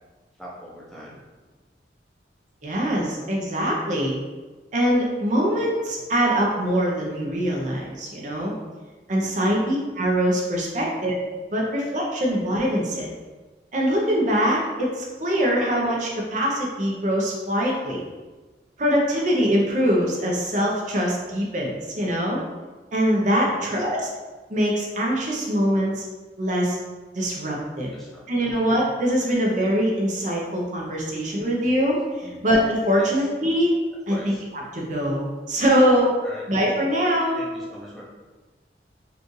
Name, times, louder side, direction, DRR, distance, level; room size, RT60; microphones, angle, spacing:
voice 1, 0.4-1.2 9.2-9.5 12.2-12.3 23.4-23.7 27.9-28.5 32.2-32.4 33.0-33.5 34.1-34.4 36.2-36.5 37.3-38.0, equal, ahead, -6 dB, 0.6 m, -42 dB
voice 2, 2.6-4.1 4.7-8.5 9.1-11.2 11.5-13.1 13.7-18.0 18.8-22.4 22.9-24.1 24.5-26.0 26.4-26.8 27.1-27.9 28.3-32.0 32.4-33.7 34.1-34.3 34.7-36.1 36.5-37.4, equal, 45° right, -2 dB, 0.7 m, -23 dB
4.9 x 2.4 x 3.1 m, 1.3 s
head